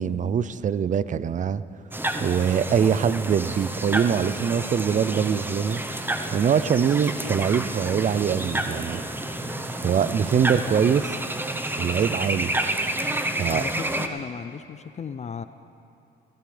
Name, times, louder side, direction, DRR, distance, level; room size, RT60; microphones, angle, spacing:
voice 1, 0.0-1.6 2.2-5.8 6.3-9.0 9.8-11.1 11.8-12.5 13.4-13.6, right 7 dB, 40° right, 16 dB, 0.5 m, -23 dB
sound 1, 1.9-14.1, right 1 dB, 10° right, 0.9 m, -30 dB
voice 2, 13.5-15.4, left 6 dB, 35° left, 12 dB, 0.4 m, -35 dB
21.0 x 15.0 x 3.4 m, 2.8 s
cardioid pair, 90°, 20 cm